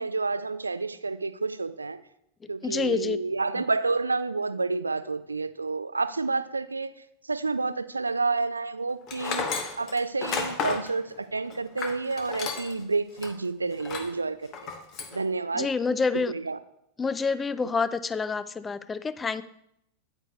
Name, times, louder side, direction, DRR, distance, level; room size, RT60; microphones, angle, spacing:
voice 1, 0.0-2.0 2.5-6.9 7.3-9.5 9.8-14.5 15.1-15.7 16.3-16.6, right 3 dB, 80° right, 13 dB, 0.4 m, -29 dB
voice 2, 2.6-3.2 15.5-16.3 17.0-19.4, left 4 dB, 15° left, 14 dB, 0.4 m, -27 dB
Tools, 9.1-12.8 13.2-13.3 13.8-14.2 14.5-15.2, left 5 dB, 35° left, 1.0 m, -32 dB
9.0 x 8.8 x 2.3 m, 0.76 s
figure-of-eight pair, 90°, 0 cm